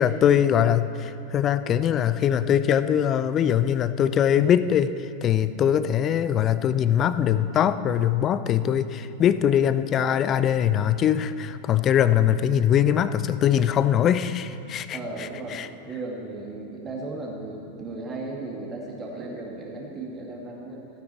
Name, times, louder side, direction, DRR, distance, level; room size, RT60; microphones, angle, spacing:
voice 1, 0.0-15.0 15.5-15.7, left 9 dB, 30° left, 13 dB, 0.4 m, -22 dB
voice 2, 14.9-15.6 15.8-20.8, right 2 dB, 20° right, -2 dB, 2.2 m, -36 dB
15.5 x 9.2 x 4.4 m, 2.7 s
figure-of-eight pair, 90°, 0 cm